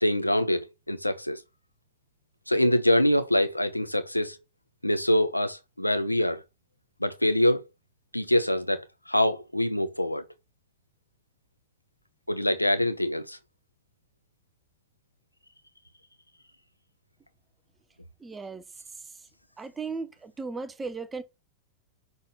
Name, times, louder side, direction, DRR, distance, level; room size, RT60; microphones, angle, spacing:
voice 1, 0.0-1.4 2.5-4.4 4.8-6.4 7.0-7.6 8.1-10.2 12.3-13.4, left 1 dB, 85° left, 0.9 m, -25 dB
voice 2, 18.2-18.6 19.6-21.2, right 4 dB, 15° right, 0.9 m, -36 dB
6.1 x 4.0 x 5.8 m
figure-of-eight pair, 90°, 0 cm